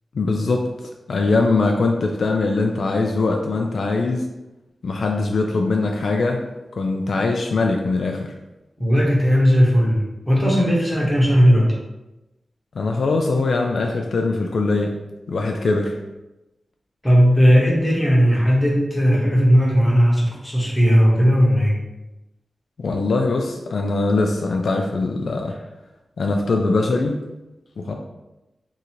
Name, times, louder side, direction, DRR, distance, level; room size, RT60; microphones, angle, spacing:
voice 1, 0.1-0.6 1.1-4.2 4.8-6.4 6.8-8.3 12.8-15.0 15.3-16.0 22.8-25.6 26.2-27.2 27.8-27.9, left 3 dB, 60° left, 2 dB, 0.3 m, -21 dB
voice 2, 8.8-11.7 17.0-21.7, equal, 10° left, -4 dB, 0.9 m, -16 dB
2.8 x 2.5 x 4.2 m, 0.98 s
wide cardioid pair, 175°, 0 cm